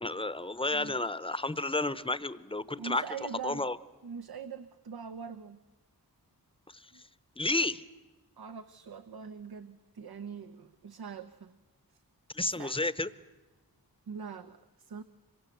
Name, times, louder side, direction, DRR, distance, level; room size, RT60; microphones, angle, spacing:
voice 1, 0.0-3.0 3.4-3.8 6.7-6.9 7.4-7.8 12.3-13.1, left 2 dB, 15° left, 16 dB, 0.8 m, -31 dB
voice 2, 2.8-3.6 4.0-5.6 6.9-7.0 8.4-11.6 11.9-12.0 12.4-12.8 14.1-15.0, right 6 dB, 80° right, 10 dB, 0.9 m, -43 dB
26.0 x 23.5 x 8.0 m, 1.2 s
wide cardioid pair, 100°, 37 cm